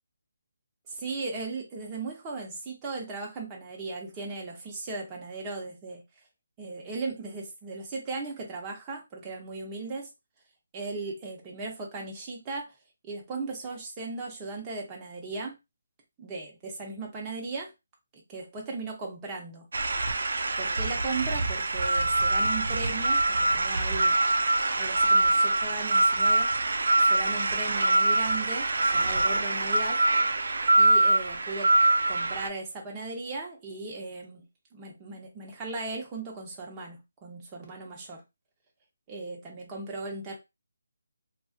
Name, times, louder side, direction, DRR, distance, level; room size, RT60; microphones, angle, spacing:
voice 1, 0.9-6.0 6.6-10.1 10.7-12.7 13.0-15.5 16.2-17.7 18.1-19.7 20.6-24.2 24.8-26.5 27.1-30.0 30.8-31.7 32.1-34.5 34.7-38.2 39.1-40.4, right 3 dB, 15° right, 0.6 m, -37 dB
sound 1, 19.7-32.5, right 2 dB, 75° right, 0.3 m, -24 dB
2.4 x 2.3 x 2.3 m
hypercardioid pair, 165°, 0 cm